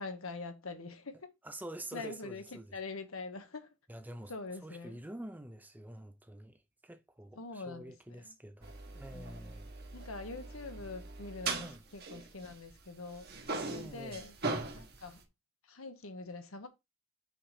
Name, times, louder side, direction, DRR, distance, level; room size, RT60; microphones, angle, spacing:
voice 1, 0.0-1.3 1.9-3.7 4.3-5.0 7.4-8.3 9.1-9.5 9.9-13.2 13.7-14.3 14.7-15.2 15.7-16.7, left 3 dB, 80° left, 1.2 m, -44 dB
voice 2, 1.4-2.7 3.9-4.3 4.6-9.7 11.6-11.8 13.6-14.2, right 1 dB, 10° right, 0.6 m, -47 dB
sound 1, 8.6-12.9 13.1-15.2, right 3 dB, 50° right, 1.3 m, -40 dB
5.7 x 4.0 x 5.0 m
head